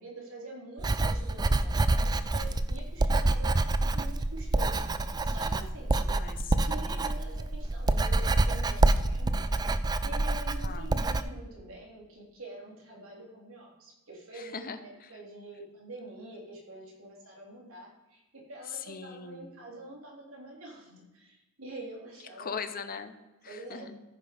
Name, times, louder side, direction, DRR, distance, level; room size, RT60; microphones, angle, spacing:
voice 1, 0.0-3.6 3.9-4.8 5.2-6.0 6.6-9.6 10.0-22.5 23.5-23.9, right 1 dB, 80° right, -3 dB, 3.4 m, -46 dB
Writing, 0.8-11.2, right 2 dB, 20° right, 0.3 m, -27 dB
voice 2, 5.9-6.9 10.6-11.0 14.3-15.1 18.7-19.5 22.4-23.2 23.4-24.0, left 6 dB, 40° left, 10 dB, 0.8 m, -41 dB
14.0 x 5.3 x 5.0 m, 1.1 s
head